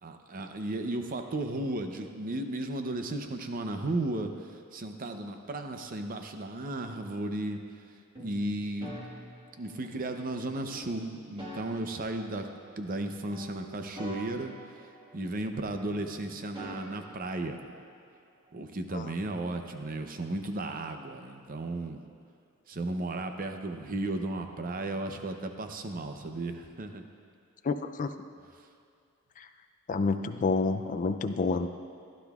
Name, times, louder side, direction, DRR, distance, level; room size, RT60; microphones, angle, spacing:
voice 1, 0.0-7.8 8.2-8.9 9.6-12.5 12.8-14.8 15.1-17.6 18.5-22.0 22.7-27.0 28.6-28.7, right 2 dB, 40° right, 6 dB, 0.6 m, -35 dB
sound 1, 8.1-10.1 10.7-13.0 13.3-15.6 15.9-17.9, equal, 20° right, 1.4 m, -46 dB
voice 2, 27.6-28.1 29.9-31.7, left 4 dB, 35° left, 7 dB, 0.4 m, -28 dB
15.5 x 11.5 x 2.4 m, 2.3 s
head